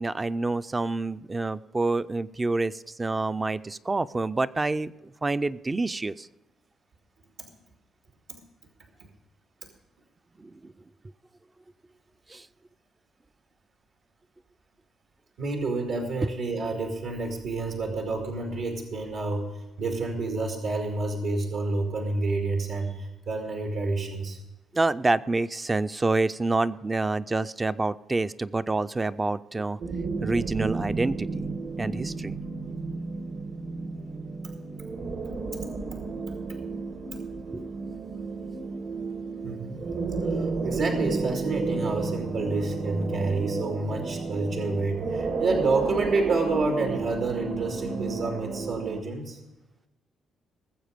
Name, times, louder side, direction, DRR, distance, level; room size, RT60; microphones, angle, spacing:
voice 1, 0.0-4.9 5.2-6.3 10.4-10.7 12.3-12.5 24.7-29.8 30.2-31.5 31.8-32.4 37.5-37.7, right 3 dB, 20° right, 12 dB, 0.4 m, -27 dB
voice 2, 15.4-24.4 35.9-36.0 37.1-37.2 39.4-39.8 40.3-49.4, right 3 dB, 80° right, 3 dB, 2.2 m, -29 dB
Anxious Swell, 29.8-49.0, right 4 dB, 60° right, 1.3 m, -32 dB
19.5 x 7.4 x 5.1 m, 1.0 s
cardioid pair, 90°, 0 cm